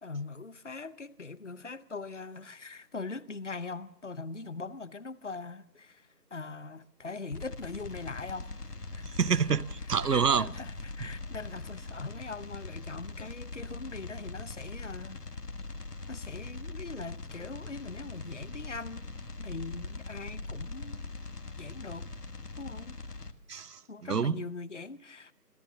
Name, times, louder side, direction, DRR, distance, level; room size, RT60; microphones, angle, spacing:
voice 1, 0.0-8.5 8.9-9.0 9.9-15.2 16.1-21.0 21.6-22.1 22.6-23.0 23.9-25.3, left 3 dB, 50° left, 0.8 m, -41 dB
sound 1, 7.3-23.3, left 3 dB, 70° left, 1.7 m, -41 dB
voice 2, 9.1-10.5 23.5-24.4, right 6 dB, 75° right, 0.8 m, -27 dB
26.5 x 16.0 x 7.0 m
figure-of-eight pair, 165°, 48 cm